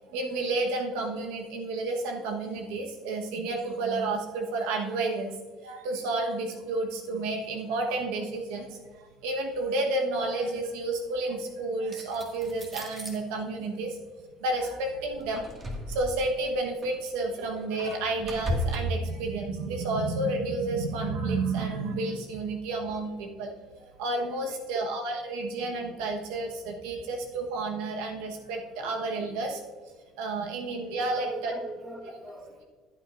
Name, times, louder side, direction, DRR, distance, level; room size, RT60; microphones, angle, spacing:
voice 1, 0.1-5.3 5.6-14.0 14.4-29.6 30.2-31.5, right 2 dB, 85° right, 2 dB, 1.2 m, -31 dB
sound 1, 11.9-13.2 15.1-16.3 16.8-17.0 17.4-18.8, equal, 30° right, 1.9 m, -34 dB
voice 2, 24.2-24.5 30.8-32.6, right 1 dB, 10° right, 2 dB, 1.5 m, -41 dB
14.5 x 8.3 x 2.6 m, 1.4 s
cardioid pair, 110°, 0 cm